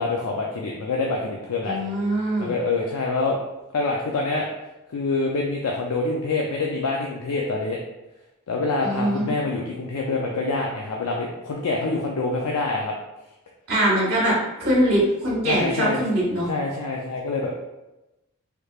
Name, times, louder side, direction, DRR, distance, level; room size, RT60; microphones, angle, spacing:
voice 1, 0.0-1.8 2.4-3.4 3.7-4.5 4.9-7.8 8.5-13.0 15.5-16.0 16.5-17.5, left 3 dB, 85° left, -1 dB, 0.4 m, -26 dB
voice 2, 1.6-2.5 8.8-9.3 13.7-16.5, right 1 dB, 50° right, -6 dB, 1.2 m, -22 dB
3.3 x 3.2 x 2.4 m, 0.98 s
head